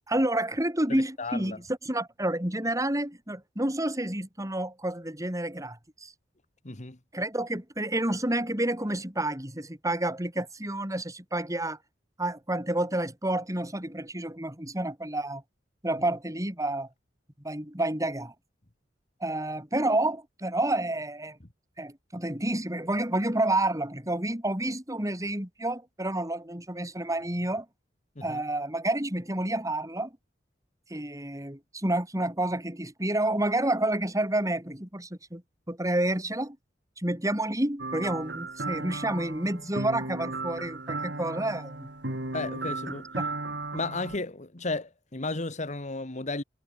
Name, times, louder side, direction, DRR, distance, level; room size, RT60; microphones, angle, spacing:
voice 1, 0.1-6.1 7.1-11.8 12.2-15.4 15.8-16.9 17.4-18.3 19.2-21.4 21.8-27.7 28.2-30.1 30.9-35.4 35.7-36.6 37.0-41.9, right 1 dB, 20° right, 5.8 m, -29 dB
voice 2, 0.9-1.6 6.7-7.0 28.2-28.4 42.3-43.0 43.7-46.4, left 3 dB, 40° left, 1.7 m, -34 dB
sound 1, 37.8-44.2, right 2 dB, 70° right, 4.5 m, -35 dB
head